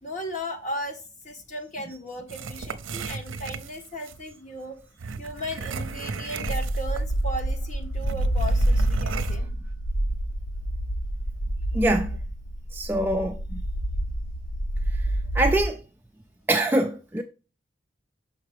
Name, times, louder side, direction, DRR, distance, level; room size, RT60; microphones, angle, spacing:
voice 1, 0.0-4.8 5.2-9.5, equal, 40° left, 1.4 m, -36 dB
sound 1, 2.3-4.2 5.0-7.1 7.4-7.5 8.0-9.4, right 4 dB, 80° right, 0.6 m, -35 dB
sound 2, 6.5-15.7, right 1 dB, 65° left, 0.7 m, -27 dB
voice 2, 11.7-12.1 12.7-13.6 15.3-15.8 16.5-17.2, right 1 dB, 10° right, 0.3 m, -24 dB
6.4 x 5.7 x 3.3 m
head